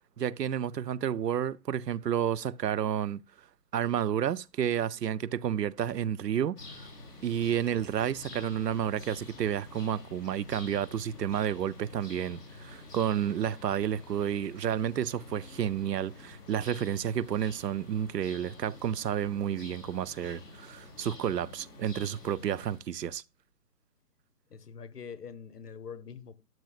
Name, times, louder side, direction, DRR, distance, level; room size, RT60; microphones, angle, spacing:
voice 1, 0.2-3.2 3.7-6.9 7.2-23.2, right 9 dB, 85° right, 0.6 m, -31 dB
sound 1, 6.5-22.8, left 2 dB, 10° left, 2.9 m, -48 dB
voice 2, 24.5-26.3, left 6 dB, 75° left, 1.1 m, -44 dB
12.0 x 6.1 x 2.4 m
figure-of-eight pair, 150°, 47 cm